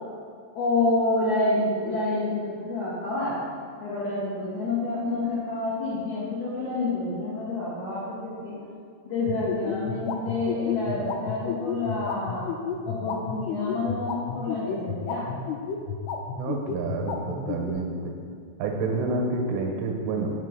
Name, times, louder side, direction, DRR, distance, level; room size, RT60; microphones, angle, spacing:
voice 1, 0.5-3.4 3.8-8.6 9.1-12.5 12.8-15.3, left 2 dB, 65° left, -11 dB, 1.9 m, -28 dB
sound 1, 9.3-17.7, left 7 dB, 85° left, 3.1 m, -31 dB
voice 2, 16.3-18.1 18.6-20.3, right 3 dB, 90° right, 1 dB, 3.3 m, -28 dB
7.3 x 4.1 x 6.7 m, 2.2 s
omnidirectional pair, 5.5 m